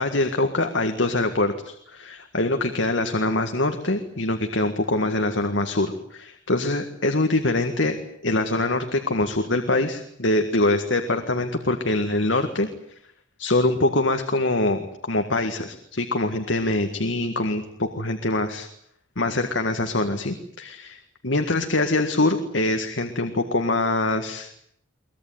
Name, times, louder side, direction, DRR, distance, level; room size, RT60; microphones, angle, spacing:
voice 1, 0.0-12.7 13.4-18.7 19.2-24.7, left 2 dB, 65° left, 6 dB, 1.9 m, -24 dB
23.5 x 19.5 x 9.4 m, 0.69 s
head